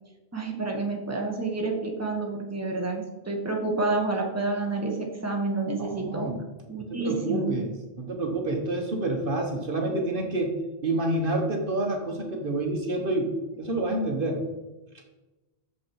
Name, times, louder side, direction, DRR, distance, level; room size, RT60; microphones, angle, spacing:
voice 1, 0.3-6.3 6.7-7.5, right 3 dB, 15° right, 0 dB, 1.3 m, -29 dB
voice 2, 5.9-6.4 6.8-7.7 8.0-14.5, right 2 dB, 55° right, 2 dB, 1.4 m, -28 dB
8.3 x 6.8 x 4.7 m, 1.1 s
omnidirectional pair, 1.1 m